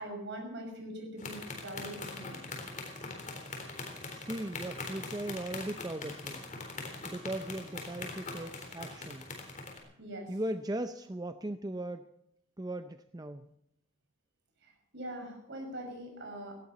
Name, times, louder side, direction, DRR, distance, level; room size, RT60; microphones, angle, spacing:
voice 1, 0.0-2.4 10.0-10.3 14.6-16.6, right 1 dB, 55° right, 3 dB, 6.0 m, -42 dB
sound 1, 1.2-9.8, left 3 dB, 35° left, 3.8 m, -42 dB
voice 2, 4.1-6.5 7.0-9.3 9.8-9.9 10.3-12.1 12.6-13.5, right 1 dB, 20° right, 9 dB, 0.5 m, -38 dB
18.5 x 16.0 x 4.2 m, 0.79 s
head